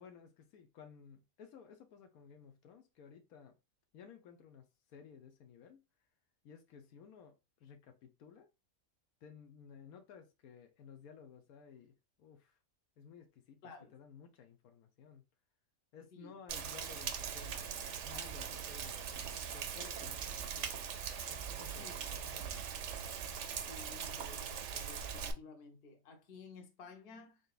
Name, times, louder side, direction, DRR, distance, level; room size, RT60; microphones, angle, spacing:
voice 1, 0.0-3.6 3.9-5.8 6.4-7.3 7.6-8.5 9.2-12.6 13.0-15.2 15.9-20.7 21.3-22.6, left 7 dB, 80° left, 1.2 m, -56 dB
Rain, 16.5-25.3, right 7 dB, 65° right, 0.9 m, -41 dB
voice 2, 23.7-27.4, left 4 dB, 45° left, 1.0 m, -53 dB
4.0 x 3.9 x 2.4 m
omnidirectional pair, 1.5 m